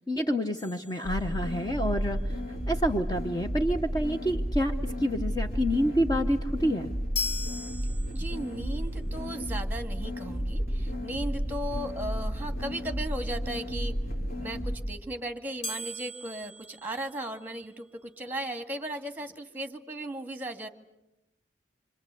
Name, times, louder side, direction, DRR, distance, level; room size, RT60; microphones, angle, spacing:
voice 1, 0.1-2.4 2.7-6.9, equal, 20° left, 5 dB, 1.0 m, -28 dB
sound 1, 0.5-1.8 7.1-8.6 15.6-17.8, left 3 dB, 75° left, 3.2 m, -39 dB
sound 2, 1.0-14.7, equal, 50° left, 5.6 m, -32 dB
voice 2, 8.1-13.9 14.4-20.7, right 1 dB, 10° right, 7 dB, 2.1 m, -36 dB
27.0 x 26.0 x 8.4 m, 0.91 s
head